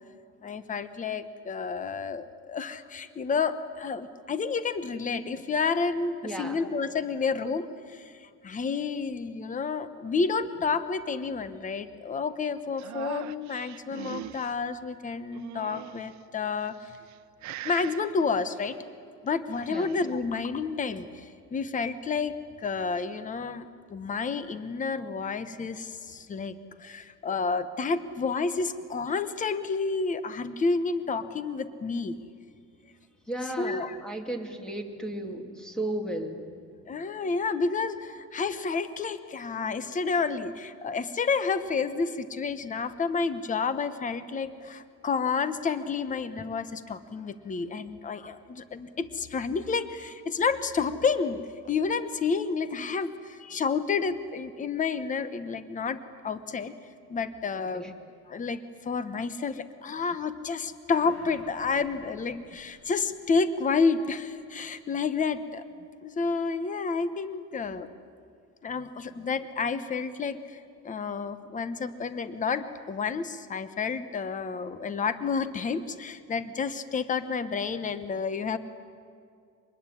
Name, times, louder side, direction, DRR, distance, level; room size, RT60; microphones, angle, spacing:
voice 1, 0.4-16.9 17.6-18.8 19.2-32.2 33.6-34.0 36.9-51.4 51.7-56.7 57.1-57.9 58.3-65.6 66.0-67.9 68.6-78.6, left 5 dB, 25° left, 12 dB, 1.1 m, -30 dB
voice 2, 6.2-6.6 19.7-19.9 33.3-36.4 57.5-57.9, right 1 dB, ahead, 4 dB, 2.4 m, -35 dB
sound 1, 12.8-14.5 15.3-16.2 16.8-17.2 17.4-18.0 19.3-20.1, right 13 dB, 65° right, 0.9 m, -41 dB
sound 2, 60.9-63.8 64.2-64.3, left 1 dB, 50° left, 6.6 m, -54 dB
25.5 x 21.0 x 10.0 m, 2.2 s
cardioid pair, 145°, 31 cm